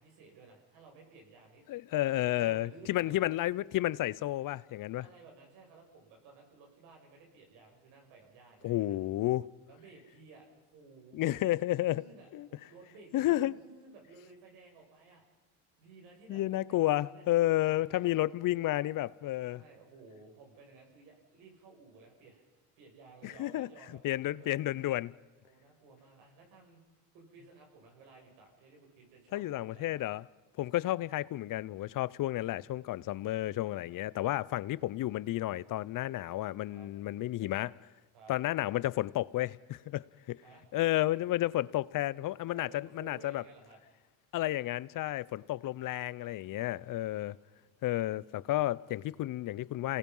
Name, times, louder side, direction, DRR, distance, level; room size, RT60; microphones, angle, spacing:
voice 1, 0.0-1.7 2.4-3.2 4.9-9.0 9.7-11.5 11.8-15.2 15.7-18.3 19.4-22.4 22.8-24.5 25.4-26.8 27.1-30.0 36.7-36.9 38.1-38.3 40.4-40.7 42.5-43.8 46.7-47.7, right 4 dB, 75° right, 7.4 m, -56 dB
voice 2, 1.7-5.0 8.6-9.5 11.1-12.0 12.3-12.5 13.1-13.5 16.3-19.6 23.2-23.7 24.0-25.1 29.3-30.2 30.6-37.7 38.3-40.4 40.7-43.4 44.3-47.4 47.8-50.0, left 15 dB, 50° left, 0.7 m, -31 dB
28.5 x 18.5 x 5.5 m
supercardioid pair, 105°, 43 cm